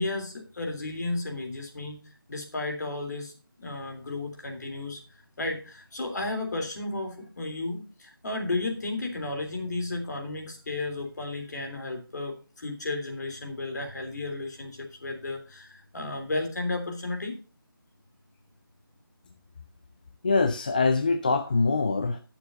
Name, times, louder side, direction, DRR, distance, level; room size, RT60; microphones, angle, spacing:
voice 1, 0.0-2.0 2.3-3.3 3.6-5.0 5.4-17.4, left 2 dB, 50° left, 3 dB, 3.3 m, -33 dB
voice 2, 20.2-22.2, left 3 dB, 20° left, 9 dB, 0.4 m, -24 dB
17.5 x 7.0 x 2.7 m, 0.36 s
figure-of-eight pair, 160°, 12 cm